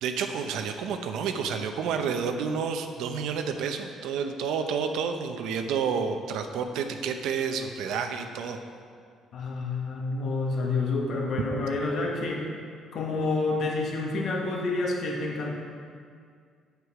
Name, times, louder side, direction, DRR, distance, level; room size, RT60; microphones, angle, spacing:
voice 1, 0.0-8.6, right 6 dB, 85° right, 6 dB, 0.8 m, -30 dB
voice 2, 9.3-12.5 12.9-15.5, left 3 dB, 55° left, -1 dB, 1.7 m, -28 dB
8.3 x 8.1 x 4.8 m, 2.1 s
cardioid pair, 140°, 0 cm